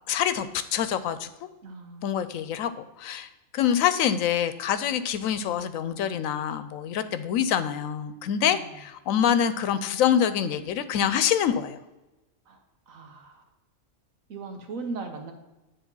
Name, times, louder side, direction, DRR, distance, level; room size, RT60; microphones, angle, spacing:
voice 1, 0.1-0.5 0.7-1.3 2.0-3.3 3.5-11.8, left 9 dB, 90° left, 12 dB, 1.0 m, -25 dB
voice 2, 1.6-2.3 8.4-8.8 12.5-12.6 12.9-13.4 14.3-15.3, right 3 dB, 85° right, 4 dB, 1.5 m, -38 dB
9.5 x 3.6 x 5.4 m, 1.1 s
omnidirectional pair, 1.4 m